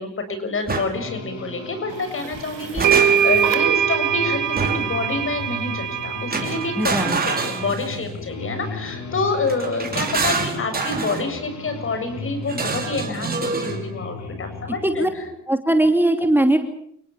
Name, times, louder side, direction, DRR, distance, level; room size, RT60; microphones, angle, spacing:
voice 1, 0.0-15.1, left 3 dB, 45° left, 8 dB, 7.4 m, -28 dB
sound 1, 0.7-0.9 2.3-3.4 4.6-5.0 6.3-8.2 9.5-11.3 12.5-13.8, right 4 dB, 30° right, 5.3 m, -26 dB
sound 2, 0.9-15.4, left 4 dB, 65° left, 7.4 m, -36 dB
sound 3, 2.2-2.3 2.8-7.7, right 9 dB, 85° right, 2.1 m, -22 dB
voice 2, 6.8-7.2 14.8-15.1 15.5-16.6, right 1 dB, 5° right, 5 dB, 2.7 m, -19 dB
29.5 x 19.0 x 7.1 m, 0.68 s
cardioid pair, 90°, 30 cm